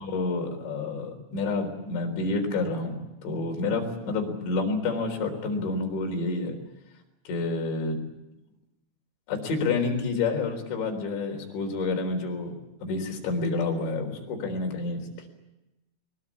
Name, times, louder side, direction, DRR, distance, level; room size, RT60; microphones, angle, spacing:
voice 1, 0.0-3.0 3.2-6.6 7.3-8.0 9.3-12.5 12.8-15.3, left 3 dB, 60° left, 3 dB, 6.1 m, -29 dB
22.5 x 22.5 x 8.5 m, 0.97 s
omnidirectional pair, 5.9 m